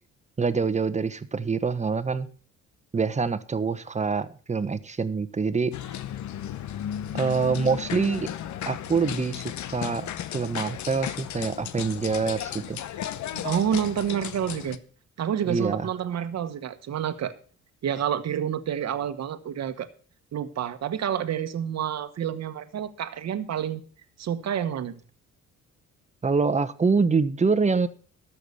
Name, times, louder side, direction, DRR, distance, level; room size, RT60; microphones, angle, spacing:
voice 1, 0.4-2.3 2.9-5.7 7.1-8.3 8.7-12.8 15.4-15.9 26.2-27.9, right 4 dB, 25° right, 13 dB, 1.1 m, -25 dB
sound 1, 5.7-14.8, left 11 dB, 70° left, 0.9 m, -35 dB
voice 2, 13.3-14.8 15.2-17.3 17.8-19.9 20.3-23.8 24.2-25.0, right 9 dB, 60° right, 9 dB, 1.2 m, -28 dB
13.0 x 5.8 x 6.9 m, 0.41 s
cardioid pair, 90°, 30 cm